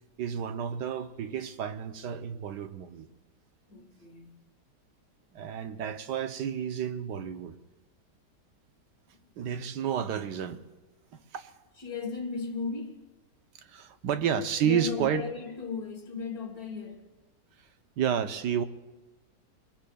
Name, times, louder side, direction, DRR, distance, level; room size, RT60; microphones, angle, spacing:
voice 1, 0.2-3.1 5.3-7.6 9.4-10.6 11.1-11.5 13.6-15.2 18.0-18.6, right 8 dB, 80° right, 1.4 m, -31 dB
voice 2, 3.7-4.4 11.8-13.1 14.1-14.3 14.6-17.0, left 5 dB, 60° left, 1.9 m, -36 dB
26.0 x 22.0 x 2.3 m
omnidirectional pair, 1.8 m